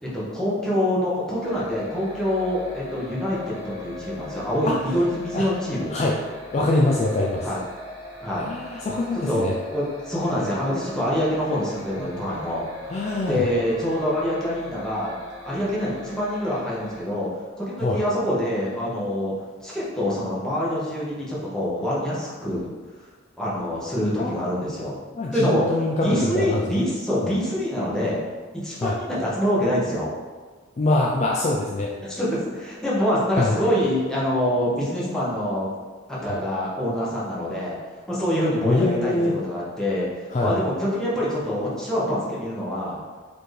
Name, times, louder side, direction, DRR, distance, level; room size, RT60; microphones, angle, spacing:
voice 1, 0.0-5.9 7.4-7.6 8.2-8.5 9.3-12.6 13.3-15.2 15.4-17.3 17.6-19.3 19.6-22.7 23.4-25.0 25.3-28.2 28.5-30.1 32.0-35.7 36.1-37.8 38.1-43.0, equal, 5° left, -8 dB, 0.8 m, -25 dB
sound 1, 1.4-17.0, left 2 dB, 20° right, 1.2 m, -41 dB
voice 2, 6.5-7.5 8.4-9.5 12.0-12.1 12.9-13.5 17.8-18.0 24.2-24.8 25.1-26.8 28.8-29.0 30.8-31.9 33.4-33.5 36.3-36.4 38.6-39.4 40.3-40.5, left 2 dB, 35° left, -3 dB, 0.3 m, -24 dB
4.2 x 2.8 x 3.2 m, 1.4 s
head